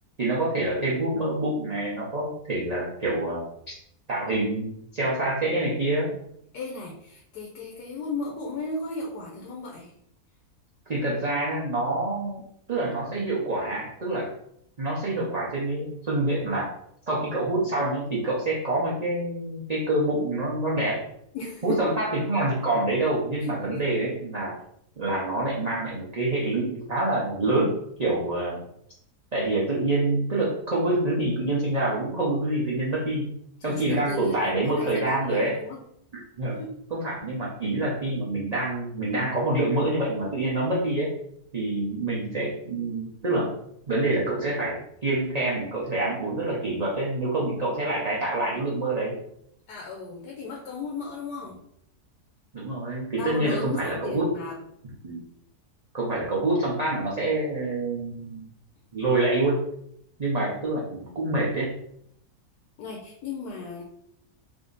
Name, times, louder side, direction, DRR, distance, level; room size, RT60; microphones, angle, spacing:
voice 1, 0.2-3.7 4.1-6.1 10.9-12.4 12.7-14.3 14.8-16.7 17.1-21.0 21.6-24.6 25.0-27.7 28.0-28.6 29.3-33.3 33.6-35.6 36.1-36.6 36.9-41.1 41.5-43.5 43.9-49.1 52.5-54.3 55.0-55.2 55.9-58.5 58.9-59.6 60.2-61.8, right 2 dB, 40° right, -5 dB, 0.5 m, -26 dB
voice 2, 6.5-9.9 21.3-21.9 23.7-23.9 33.6-35.8 36.6-36.7 49.7-51.6 53.1-54.6 62.8-63.8, left 3 dB, 85° left, -2 dB, 1.3 m, -35 dB
3.5 x 2.7 x 3.9 m, 0.73 s
omnidirectional pair, 1.7 m